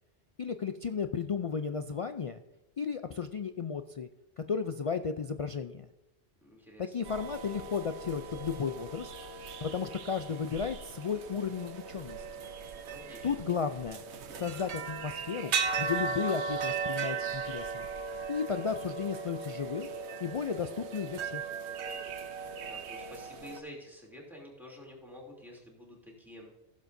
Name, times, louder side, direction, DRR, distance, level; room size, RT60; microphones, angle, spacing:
voice 1, 0.4-2.4 2.8-4.1 4.4-5.9 6.8-9.1 9.6-12.2 13.2-14.0 14.3-17.9 18.3-19.9 20.2-21.5, left 6 dB, 60° left, 8 dB, 0.3 m, -34 dB
voice 2, 6.4-6.9 12.8-13.3 22.7-26.5, equal, ahead, -2 dB, 2.9 m, -49 dB
sound 1, 7.0-23.6, right 5 dB, 90° right, 1.0 m, -37 dB
16.0 x 7.4 x 2.6 m, 0.99 s
omnidirectional pair, 1.1 m